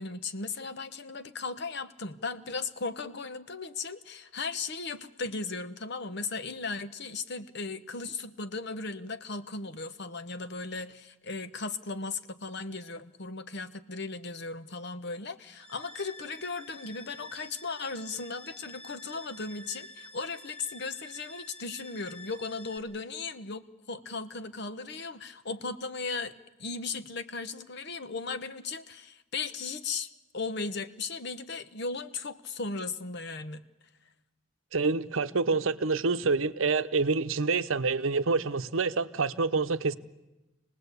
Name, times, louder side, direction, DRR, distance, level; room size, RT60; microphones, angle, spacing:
voice 1, 0.0-26.3 26.6-30.1 30.3-33.6, left 4 dB, 55° left, 1.0 m, -37 dB
sound 1, 15.6-22.8, left 2 dB, 5° left, 2.9 m, -48 dB
voice 2, 34.7-39.9, right 4 dB, 75° right, 0.8 m, -27 dB
26.5 x 19.0 x 8.2 m
head